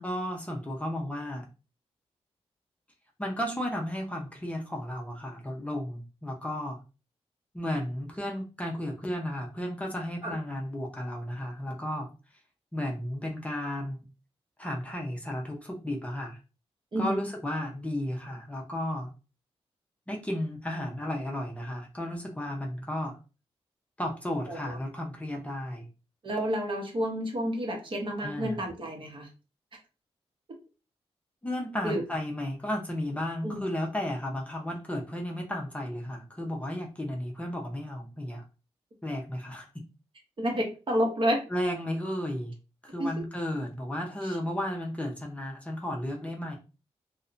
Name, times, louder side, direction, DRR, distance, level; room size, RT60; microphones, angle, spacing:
voice 1, 0.0-1.4 3.2-6.8 7.5-12.1 12.7-14.0 14.6-16.4 17.0-19.1 20.1-23.2 24.0-25.9 28.2-28.6 31.4-38.4 39.0-39.7 41.5-42.5 42.8-46.6, left 1 dB, 10° left, 0 dB, 0.5 m, -33 dB
voice 2, 16.9-17.3 24.5-24.8 26.2-29.3 31.8-32.0 33.4-33.6 40.4-41.4 43.0-43.1 44.2-44.4, equal, 50° right, 2 dB, 0.8 m, -30 dB
2.7 x 2.1 x 2.4 m, 0.32 s
wide cardioid pair, 95°, 11 cm